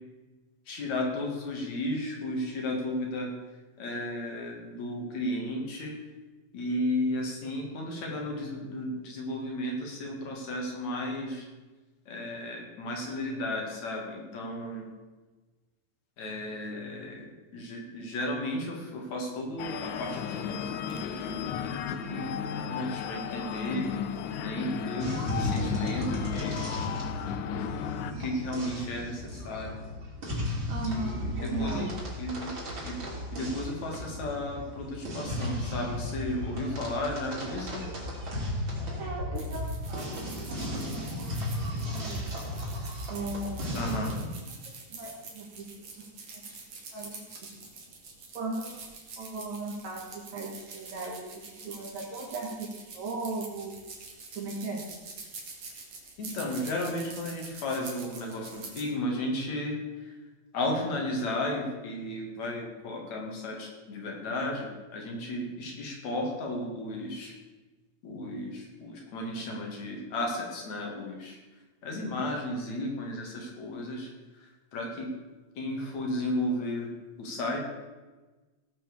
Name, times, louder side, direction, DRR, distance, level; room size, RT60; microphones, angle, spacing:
voice 1, 0.7-3.3 3.8-5.9 6.5-11.5 12.1-14.8 16.2-23.9 24.4-26.6 27.5-27.7 28.1-29.8 30.8-32.5 32.8-33.0 33.3-37.8 43.7-44.1 56.2-60.1 60.5-67.3 68.0-71.4 71.8-74.1 74.4-75.1 75.6-76.9 77.2-77.6, left 1 dB, 70° left, 0 dB, 3.8 m, -34 dB
sound 1, 19.6-28.1, left 8 dB, 90° left, 2.2 m, -34 dB
sound 2, 25.0-44.1, left 1 dB, 40° right, 3.9 m, -35 dB
voice 2, 30.7-32.0 38.6-38.7 39.0-40.1 40.5-41.3 41.9-42.5 43.1-44.1 44.9-45.7 46.0-46.4 46.9-47.5 48.3-48.8 49.2-53.8 54.4-54.9, right 2 dB, 75° right, -2 dB, 3.2 m, -37 dB
sound 3, 39.3-58.9, right 4 dB, 55° right, 3.2 m, -46 dB
17.5 x 6.0 x 7.0 m, 1.2 s
omnidirectional pair, 3.4 m